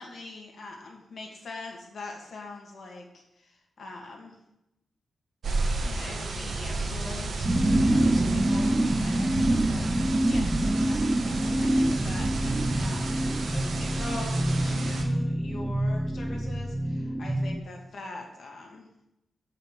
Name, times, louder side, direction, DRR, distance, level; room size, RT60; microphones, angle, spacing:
voice 1, 0.0-4.3 5.8-9.9 10.3-13.3 13.5-18.9, left 3 dB, 60° left, 1 dB, 2.1 m, -43 dB
sound 1, 5.4-15.0, right 3 dB, 65° right, 1.5 m, -31 dB
sound 2, 7.4-17.6, right 1 dB, 15° right, 0.5 m, -26 dB
7.0 x 5.7 x 7.4 m, 0.86 s
wide cardioid pair, 120°, 0 cm